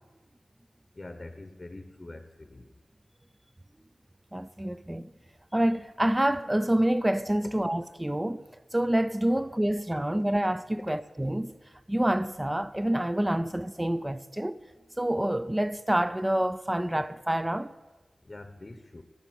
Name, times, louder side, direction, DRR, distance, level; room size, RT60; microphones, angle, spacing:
voice 1, 0.9-2.7 18.2-19.0, left 2 dB, 35° left, 0.8 m, -44 dB
voice 2, 4.3-5.1 5.5-8.4 8.7-11.6 11.9-14.6 15.0-17.7, right 1 dB, 15° right, 0.4 m, -27 dB
12.5 x 6.7 x 9.2 m
wide cardioid pair, 60°, 0 cm